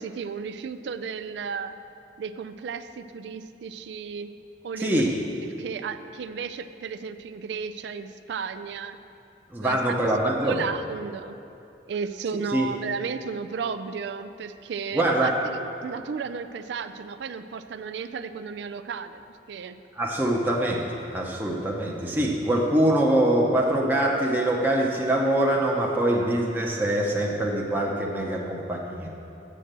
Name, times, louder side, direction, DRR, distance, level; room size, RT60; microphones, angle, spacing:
voice 1, 0.0-1.8 2.2-4.3 4.6-5.0 5.4-9.0 9.6-10.1 10.4-11.4 11.9-19.2 19.5-19.8, right 6 dB, 70° right, 11 dB, 0.3 m, -34 dB
voice 2, 9.5-10.6 12.5-12.7 14.9-15.4 19.9-20.8 21.1-29.1, right 1 dB, 10° right, -2 dB, 0.7 m, -24 dB
7.7 x 7.5 x 6.6 m, 2.8 s
head